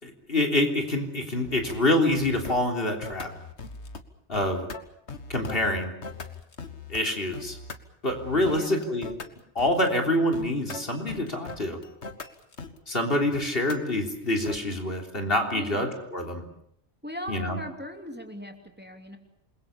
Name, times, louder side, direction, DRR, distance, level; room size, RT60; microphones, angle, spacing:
voice 1, 0.0-3.3 4.3-4.7 5.3-5.9 6.9-7.6 8.0-9.1 9.6-11.8 12.9-16.4 17.3-17.6, left 1 dB, 60° left, 3 dB, 3.8 m, -26 dB
sound 1, 1.4-1.8 2.1-2.6 3.0-4.0 4.3-7.0 7.3-7.8 8.1-14.6, left 4 dB, 85° left, 1.9 m, -40 dB
voice 2, 8.3-8.8 15.5-15.9 17.0-19.2, equal, 10° right, 4 dB, 2.9 m, -39 dB
28.0 x 22.0 x 7.1 m, 0.71 s
omnidirectional pair, 1.1 m